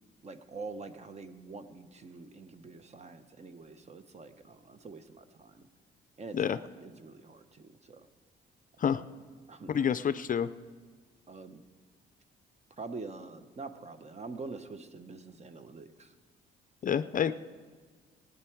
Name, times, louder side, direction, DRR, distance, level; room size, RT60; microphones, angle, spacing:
voice 1, 0.2-5.7 6.2-8.1 9.5-9.9 11.3-11.6 12.8-16.1, right 3 dB, 35° right, 11 dB, 0.9 m, -45 dB
voice 2, 9.7-10.5 16.8-17.3, left 8 dB, 45° left, 13 dB, 0.4 m, -28 dB
17.0 x 9.7 x 4.6 m, 1.5 s
cardioid pair, 90°, 20 cm